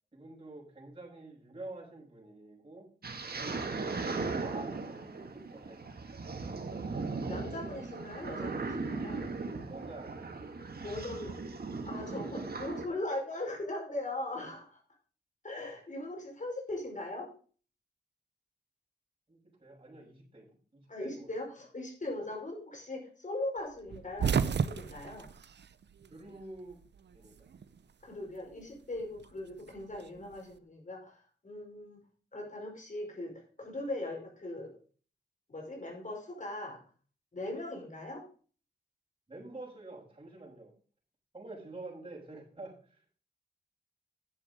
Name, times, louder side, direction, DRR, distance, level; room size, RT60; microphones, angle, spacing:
voice 1, 0.1-2.9 4.3-6.1 9.7-10.4 19.3-20.5 20.7-21.3 26.1-26.8 27.1-27.5 39.3-40.7 41.3-43.0, right 2 dB, 30° right, -3 dB, 6.3 m, -48 dB
sound 1, 3.0-12.9, right 3 dB, 60° right, 1.8 m, -38 dB
voice 2, 7.3-9.3 10.8-11.4 11.9-14.8 15.4-17.3 20.9-25.3 28.0-32.0 32.3-34.8 35.5-36.8 37.3-38.3, left 2 dB, 45° left, 1 dB, 5.1 m, -40 dB
sound 2, 23.9-26.4 26.7-27.8 29.0-30.4, right 6 dB, 80° right, 0.6 m, -33 dB
11.0 x 7.7 x 5.1 m, 0.41 s
wide cardioid pair, 80°, 18 cm